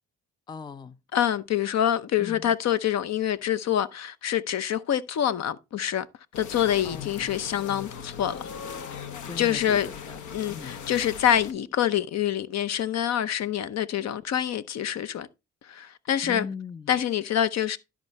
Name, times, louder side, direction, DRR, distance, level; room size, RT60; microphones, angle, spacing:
voice 1, 0.5-1.0 2.2-2.5 6.8-7.1 9.2-10.2 10.5-10.8 16.2-16.9, left 5 dB, 15° left, 0.4 m, -39 dB
voice 2, 1.1-6.1 6.4-8.5 9.4-9.9 10.3-15.3 15.6-16.5 16.9-17.8, left 10 dB, 60° left, 0.8 m, -26 dB
sound 1, 6.3-11.5, left 7 dB, 75° left, 1.1 m, -39 dB
12.5 x 4.6 x 4.1 m
cardioid pair, 90°, 30 cm